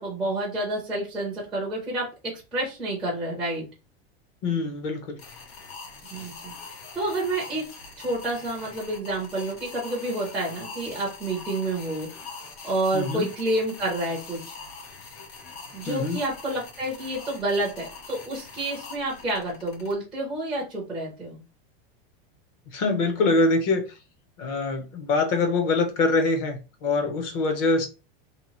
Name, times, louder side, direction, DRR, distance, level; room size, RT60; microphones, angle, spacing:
voice 1, 0.0-2.1 2.5-3.6 6.1-6.5 6.9-7.6 8.0-12.1 12.6-14.6 15.7-21.4, right 1 dB, 5° right, 0.4 m, -29 dB
voice 2, 4.4-5.2 12.9-13.3 15.9-16.2 22.7-23.8 24.4-27.9, left 3 dB, 40° left, 0.6 m, -24 dB
sound 1, 5.2-19.9, left 4 dB, 85° left, 1.1 m, -43 dB
2.8 x 2.2 x 2.9 m
supercardioid pair, 175°, 30 cm